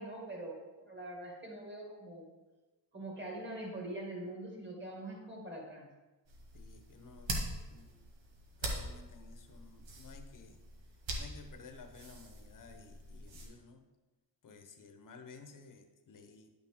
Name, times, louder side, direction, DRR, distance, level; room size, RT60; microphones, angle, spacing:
voice 1, 0.0-2.3 2.9-5.9, right 1 dB, 25° right, -1 dB, 2.2 m, -43 dB
sound 1, 6.2-13.5, right 1 dB, 85° right, 1.6 m, -43 dB
voice 2, 6.5-7.4 7.7-7.9 8.6-10.6 11.2-13.8 14.4-16.5, left 4 dB, 45° left, 6 dB, 0.9 m, -54 dB
10.0 x 6.1 x 3.6 m, 1.2 s
wide cardioid pair, 110°, 44 cm